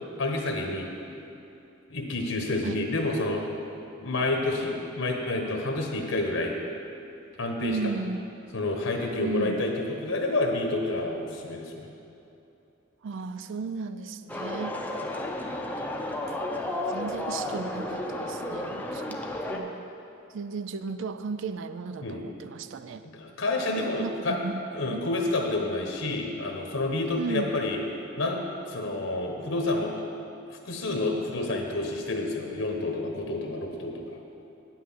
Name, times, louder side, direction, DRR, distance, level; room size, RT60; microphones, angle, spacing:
voice 1, 0.2-0.9 1.9-3.4 4.0-6.6 7.4-7.8 8.5-11.9 22.0-22.2 23.2-24.4 24.7-27.8 28.2-28.4 28.7-29.9 30.6-34.2, left 2 dB, 75° left, 2 dB, 1.2 m, -29 dB
voice 2, 7.6-8.3 9.2-9.6 13.0-14.7 15.4-15.6 15.8-16.0 16.3-19.9 20.3-23.0 23.7-24.6 24.9-25.2 27.2-27.6, right 4 dB, 65° right, 11 dB, 0.4 m, -35 dB
sound 1, 14.3-19.6, left 1 dB, 10° left, 0.7 m, -32 dB
9.2 x 6.1 x 7.5 m, 2.8 s
head